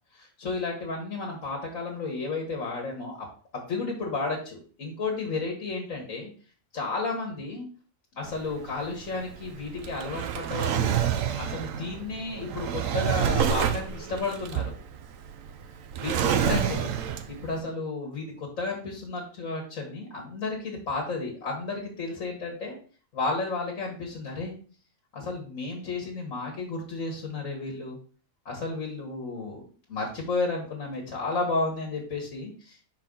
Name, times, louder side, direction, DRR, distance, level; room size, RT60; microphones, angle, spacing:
voice 1, 0.1-3.2 3.5-6.3 6.7-7.7 8.2-11.0 11.4-14.7 15.9-16.9 17.3-22.7 23.1-24.5 25.1-28.0 28.5-29.6 29.9-32.9, left 3 dB, 70° left, 0 dB, 1.7 m, -32 dB
Drawer open or close, 8.2-17.5, right 8 dB, 75° right, 1.0 m, -28 dB
5.8 x 4.6 x 3.7 m, 0.41 s
omnidirectional pair, 1.4 m